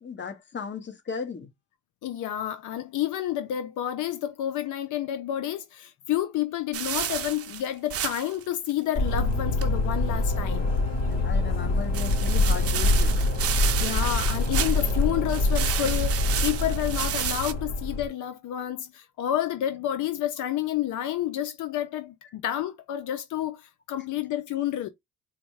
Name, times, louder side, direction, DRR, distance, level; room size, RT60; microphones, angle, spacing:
voice 1, 0.0-1.5 11.0-13.2, left 5 dB, 35° left, 1.1 m, -36 dB
voice 2, 2.0-10.8 13.6-24.9, left 12 dB, 80° left, 0.6 m, -30 dB
sound 1, 6.7-8.4 8.7-8.8 9.2-9.3 9.6-9.7 11.9-15.0 15.3-17.5, right 10 dB, 50° right, 0.6 m, -31 dB
sound 2, 8.9-18.1, left 2 dB, 55° left, 3.0 m, -25 dB
4.3 x 2.1 x 4.5 m
cardioid pair, 90°, 30 cm